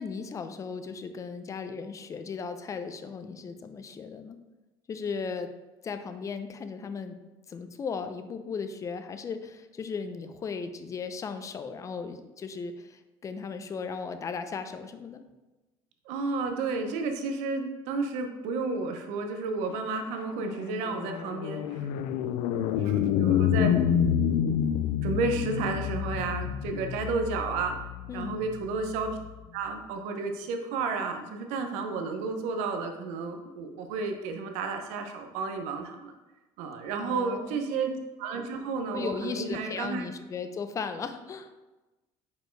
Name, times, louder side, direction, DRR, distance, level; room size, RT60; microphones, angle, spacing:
voice 1, 0.0-4.4 4.9-5.5 5.8-7.2 7.5-15.2 28.1-28.4 37.0-37.6 38.9-41.5, left 5 dB, 30° left, 8 dB, 0.5 m, -36 dB
voice 2, 16.1-21.8 22.8-23.7 25.0-27.7 28.1-29.2 29.5-36.1 36.6-37.9 38.2-40.0, right 4 dB, 85° right, 5 dB, 0.8 m, -32 dB
sound 1, 19.8-29.3, left 9 dB, 80° left, 0.4 m, -28 dB
5.3 x 4.4 x 4.5 m, 1.1 s
cardioid pair, 125°, 11 cm